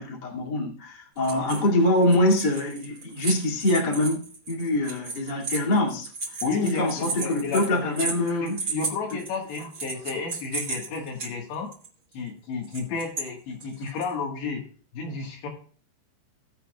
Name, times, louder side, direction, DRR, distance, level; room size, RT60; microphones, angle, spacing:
voice 1, 0.0-4.2 4.5-8.6, left 1 dB, 35° left, -1 dB, 1.7 m, -24 dB
sound 1, 1.2-1.7 2.0-11.3 11.7-11.9 12.6-13.2 13.6-14.1, right 4 dB, 30° right, 1.9 m, -34 dB
voice 2, 6.4-8.1 8.4-11.7 12.1-14.6 14.9-15.5, left 4 dB, 65° left, 1 dB, 3.5 m, -32 dB
19.5 x 6.9 x 2.3 m, 0.43 s
omnidirectional pair, 5.8 m